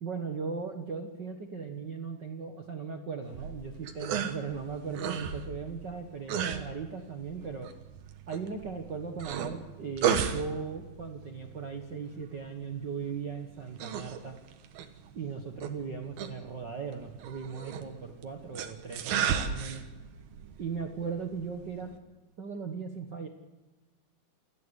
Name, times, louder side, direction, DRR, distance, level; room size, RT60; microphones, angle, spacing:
voice 1, 0.0-7.7 8.3-14.3 15.1-19.8 20.6-21.9 22.4-23.3, right 5 dB, 60° right, 4 dB, 1.1 m, -38 dB
sound 1, 3.3-22.0, right 8 dB, 90° right, 3.3 m, -36 dB
28.5 x 13.0 x 8.2 m, 1.2 s
omnidirectional pair, 4.1 m